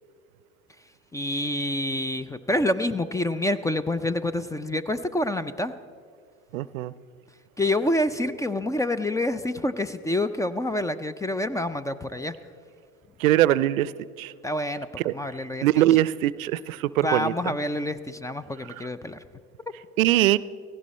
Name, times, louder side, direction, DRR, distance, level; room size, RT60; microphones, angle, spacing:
voice 1, 1.1-5.7 7.6-12.3 14.4-15.8 17.0-19.2, left 1 dB, 10° left, 14 dB, 0.4 m, -27 dB
voice 2, 6.5-6.9 13.2-13.9 14.2-14.3 15.0-15.1 15.6-17.3 20.0-20.4, right 14 dB, 85° right, 19 dB, 0.5 m, -21 dB
17.0 x 16.0 x 4.2 m, 2.1 s
hypercardioid pair, 85°, 40 cm